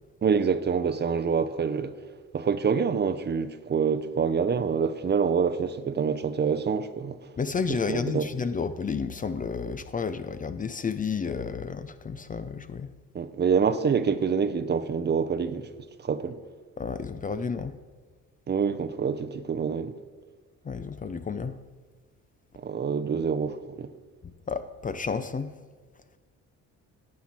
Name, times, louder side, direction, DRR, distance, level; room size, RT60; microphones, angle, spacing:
voice 1, 0.2-1.9 2.3-7.2 7.9-8.3 13.1-15.7 16.0-16.4 18.5-20.0 22.6-23.9, right 6 dB, 35° right, 0.6 m, -26 dB
voice 2, 7.4-12.9 16.8-17.7 20.6-21.6 24.2-25.5, left 5 dB, 25° left, 0.5 m, -31 dB
12.0 x 7.5 x 4.3 m
cardioid pair, 90°, 30 cm